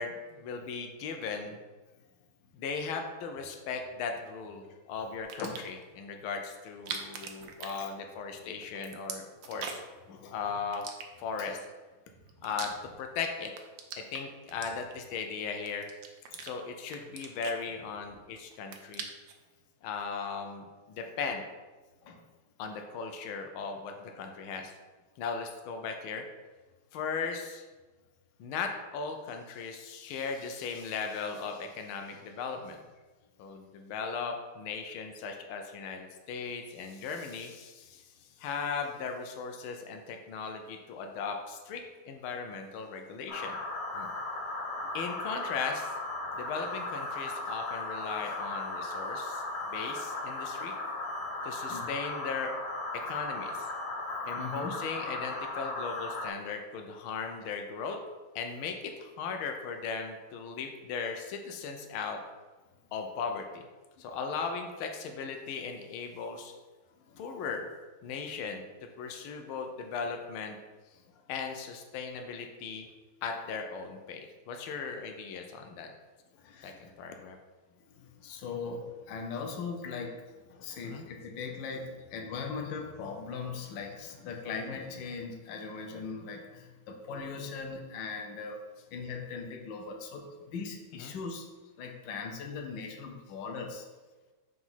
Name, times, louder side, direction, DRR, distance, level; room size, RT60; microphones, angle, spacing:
voice 1, 0.0-1.6 2.5-9.8 10.3-10.9 11.2-11.6 12.4-12.7 13.0-13.5 14.0-15.9 16.4-19.1 19.8-21.4 22.6-24.7 25.2-26.2 26.9-27.6 28.4-32.8 33.4-38.0 38.4-43.6 43.9-44.1 44.9-45.9 46.3-50.8 51.4-52.5 53.1-53.7 54.2-58.0 58.3-62.2 62.9-63.6 64.0-66.5 67.2-67.7 68.0-68.7 69.0-70.6 71.3-72.9 73.2-75.9 76.6-77.4 80.8-81.0 90.9-91.1, left 5 dB, 90° left, 4 dB, 1.5 m, -37 dB
sound 1, 5.2-5.8 6.7-8.3 8.6-10.0 10.7-11.5 12.1-13.2 13.5-15.2 15.7-16.5 16.9-18.2 18.5-19.4, right 6 dB, 75° right, 1.4 m, -42 dB
sound 2, 43.3-56.3, left 2 dB, 50° left, 0.8 m, -36 dB
voice 2, 50.4-50.9 51.7-51.9 54.4-54.8 67.0-67.2 71.1-71.2 76.3-76.9 77.9-88.6 88.9-91.5 91.8-93.9, left 5 dB, 70° left, 2 dB, 1.4 m, -40 dB
4.9 x 4.0 x 5.5 m, 1.2 s
omnidirectional pair, 2.2 m